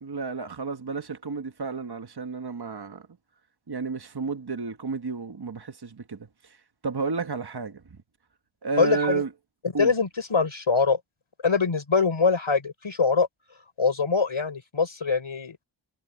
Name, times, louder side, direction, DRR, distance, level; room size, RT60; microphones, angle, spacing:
voice 1, 0.0-3.1 3.7-6.2 6.8-8.0 8.6-9.3 9.7-9.9, right 4 dB, 55° right, 1.4 m, -31 dB
voice 2, 8.8-9.2 9.8-11.0 11.4-13.3 13.8-15.6, left 4 dB, 80° left, 4.4 m, -23 dB
wide cardioid pair, 50°, 48 cm